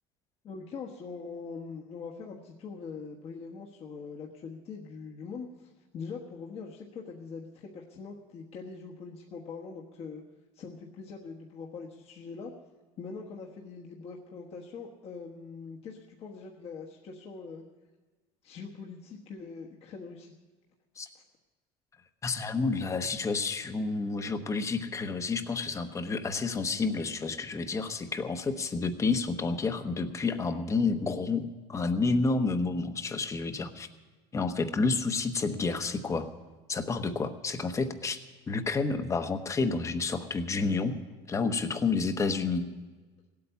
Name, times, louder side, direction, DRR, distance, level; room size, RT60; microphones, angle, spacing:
voice 1, 0.4-10.2 10.5-12.5 13.0-17.6 18.4-20.4 21.1-21.2, left 5 dB, 45° left, -1 dB, 1.3 m, -43 dB
voice 2, 22.2-33.9 34.3-36.3 36.7-38.2 38.5-40.9 41.3-42.7, left 4 dB, 20° left, 9 dB, 1.0 m, -30 dB
17.0 x 8.5 x 8.2 m, 1.3 s
cardioid pair, 135°, 14 cm